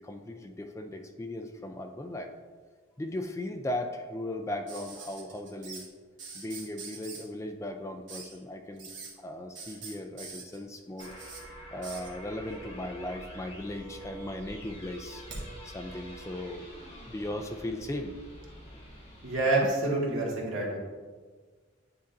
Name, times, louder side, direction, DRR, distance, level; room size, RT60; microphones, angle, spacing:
voice 1, 0.0-2.3 3.0-5.8 6.3-8.9 9.2-11.1 11.7-15.2 15.6-16.7 17.1-18.1, left 1 dB, 15° left, 5 dB, 0.3 m, -37 dB
sound 1, 4.7-5.9 6.2-7.2 8.1-8.4 8.8-9.1 9.6-11.4 11.8-12.1 13.1-13.7 14.1-15.5 16.8-16.9, right 4 dB, 65° right, 1.2 m, -44 dB
sound 2, 11.0-19.4, right 1 dB, 30° left, 1.3 m, -47 dB
voice 2, 19.2-20.8, right 2 dB, 80° right, -3 dB, 1.6 m, -27 dB
9.5 x 4.1 x 2.5 m, 1.5 s
head